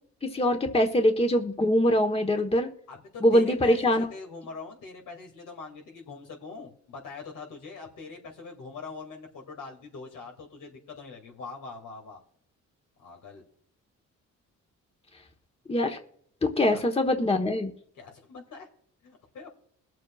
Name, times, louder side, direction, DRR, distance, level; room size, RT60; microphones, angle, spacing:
voice 1, 0.2-2.7 3.2-4.1 15.7-16.0 16.4-17.7, left 1 dB, 20° left, 4 dB, 1.3 m, -23 dB
voice 2, 2.9-12.2 13.0-13.4 16.7-16.8 18.0-18.7 19.0-19.5, left 4 dB, 75° left, 1 dB, 2.6 m, -43 dB
21.5 x 7.5 x 2.5 m, 0.65 s
cardioid pair, 75°, 31 cm